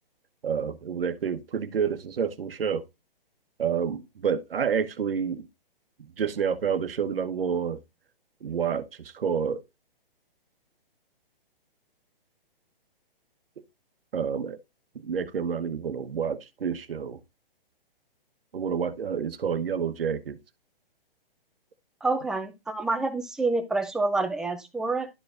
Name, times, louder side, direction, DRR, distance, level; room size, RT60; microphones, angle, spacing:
voice 1, 0.4-2.8 3.6-5.4 6.2-7.8 8.4-9.6 14.1-14.6 15.0-17.2 18.5-20.4, right 7 dB, 75° right, 1.1 m, -29 dB
voice 2, 22.0-25.1, right 3 dB, ahead, 0.5 m, -27 dB
12.0 x 4.8 x 2.5 m
hypercardioid pair, 140°, 29 cm